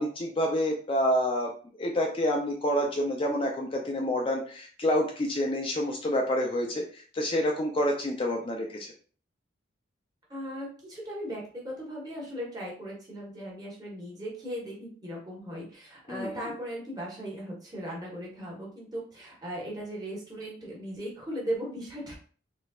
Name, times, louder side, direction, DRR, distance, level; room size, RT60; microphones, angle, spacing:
voice 1, 0.0-1.5 1.8-8.9 16.1-16.4, equal, 25° left, 1 dB, 0.4 m, -28 dB
voice 2, 10.3-22.1, equal, 20° right, -3 dB, 1.2 m, -38 dB
4.0 x 3.2 x 2.3 m, 0.42 s
head